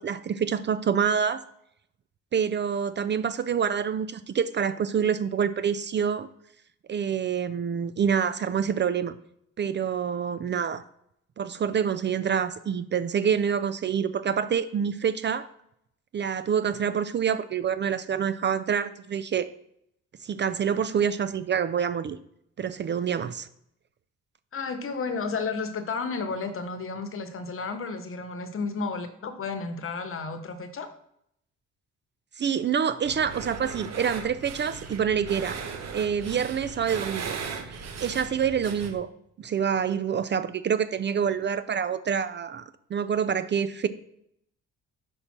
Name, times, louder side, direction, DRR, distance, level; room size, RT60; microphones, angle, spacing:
voice 1, 0.0-1.4 2.3-6.3 6.9-9.2 9.6-10.8 11.4-15.5 16.1-19.5 20.2-22.2 22.6-23.5 32.4-35.6 35.9-37.4 37.7-39.1 39.4-43.9, right 7 dB, 40° right, 14 dB, 0.4 m, -27 dB
voice 2, 24.5-30.9, left 4 dB, 45° left, 8 dB, 1.0 m, -32 dB
sound 1, 33.0-38.9, right 5 dB, 60° right, 1.1 m, -37 dB
5.8 x 5.3 x 4.3 m, 0.73 s
cardioid pair, 90°, 30 cm